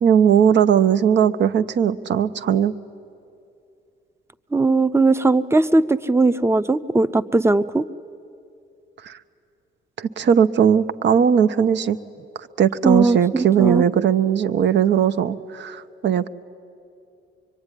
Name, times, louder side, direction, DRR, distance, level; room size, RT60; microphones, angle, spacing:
voice 1, 0.0-2.7 9.0-9.1 10.0-12.0 12.6-16.3, right 8 dB, 65° right, 11 dB, 0.9 m, -18 dB
voice 2, 4.5-7.8 12.8-13.8, right 3 dB, 15° right, 14 dB, 0.7 m, -19 dB
24.5 x 23.5 x 10.0 m, 2.6 s
cardioid pair, 90°, 20 cm